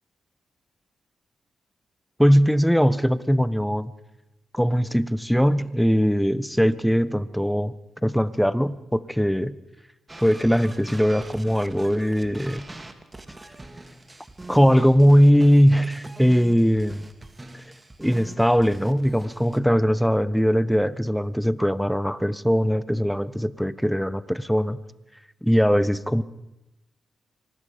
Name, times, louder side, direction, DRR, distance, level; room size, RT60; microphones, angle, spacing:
voice 1, 2.2-3.9 4.5-7.7 8.0-9.6 10.2-12.7 14.5-17.0 17.5-17.6 18.0-24.8 25.4-26.2, equal, ahead, 17 dB, 1.1 m, -20 dB
sound 1, 10.1-19.6, right 2 dB, 25° right, 2.4 m, -43 dB
25.0 x 19.5 x 5.3 m, 0.97 s
supercardioid pair, 45°, 0 cm